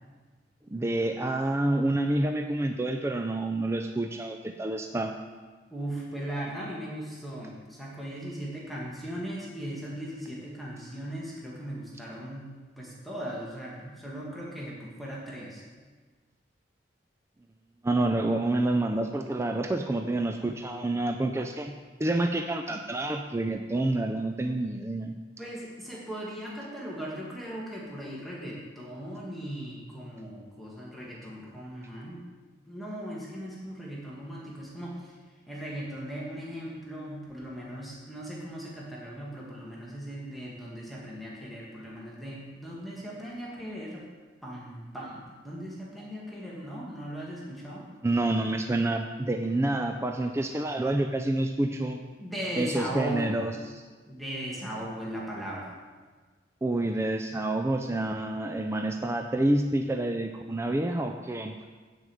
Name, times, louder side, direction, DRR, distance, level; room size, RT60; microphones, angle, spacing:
voice 1, 0.7-5.1 17.8-21.7 22.0-25.1 48.0-52.0 52.6-53.5 56.6-61.5, right 2 dB, 15° right, 5 dB, 0.4 m, -28 dB
voice 2, 5.7-12.5 12.8-15.6 25.4-32.2 32.7-35.2 35.5-44.0 44.4-47.9 52.2-53.4 54.1-55.7, right 1 dB, ahead, -5 dB, 1.7 m, -38 dB
9.7 x 5.2 x 7.7 m, 1.4 s
head